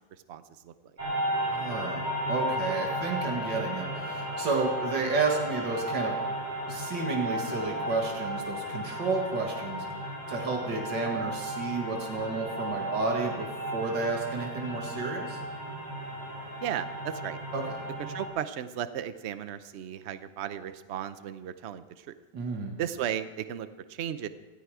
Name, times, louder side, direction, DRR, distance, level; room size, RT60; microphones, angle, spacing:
voice 1, 0.3-0.7 16.6-17.4 18.1-22.1 22.8-24.3, right 10 dB, 55° right, 12 dB, 0.7 m, -35 dB
sound 1, 1.0-18.3, equal, 25° right, 4.6 m, -34 dB
voice 2, 1.5-6.2 6.7-9.8 10.3-15.4 17.5-17.6 22.3-22.8, right 3 dB, 85° right, 1 dB, 2.6 m, -31 dB
18.0 x 13.5 x 4.9 m, 1.2 s
omnidirectional pair, 1.9 m